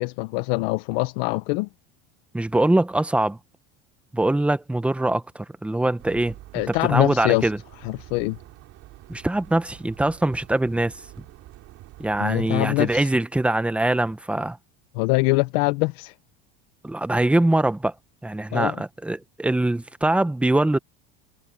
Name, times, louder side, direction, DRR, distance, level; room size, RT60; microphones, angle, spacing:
voice 1, 0.0-1.7 6.5-7.5 7.8-8.4 12.2-13.1 15.0-16.1 18.5-18.8, left 24 dB, 70° left, 0.8 m, -23 dB
voice 2, 2.3-3.4 4.1-6.3 6.7-7.6 9.1-10.9 12.0-14.6 16.8-17.9 18.2-20.8, right 1 dB, 5° right, 0.9 m, -23 dB
sound 1, 6.0-13.0, right 15 dB, 50° right, 2.9 m, -46 dB
supercardioid pair, 135°, 31 cm